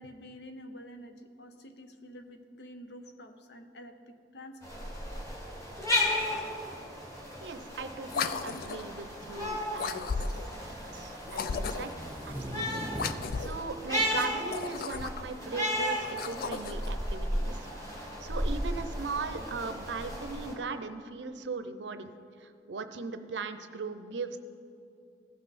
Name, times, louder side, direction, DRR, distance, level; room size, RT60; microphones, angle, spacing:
voice 1, 0.0-4.9 6.7-6.9, equal, 70° left, 7 dB, 0.8 m, -48 dB
sound 1, 4.6-20.5, equal, 20° left, 1.7 m, -35 dB
sound 2, 7.2-7.5 8.5-8.9 9.3-13.5 14.1-14.4, right 1 dB, 10° right, 0.6 m, -42 dB
voice 2, 7.4-10.1 10.9-11.9 12.2-17.7 18.2-22.1 22.4-24.4, right 4 dB, 85° right, 10 dB, 0.6 m, -38 dB
sound 3, 8.1-8.9 9.8-10.6 11.3-12.0 12.9-13.6 14.4-15.4 16.0-16.9, left 5 dB, 55° left, 0.3 m, -35 dB
15.5 x 5.7 x 4.1 m, 2.4 s
head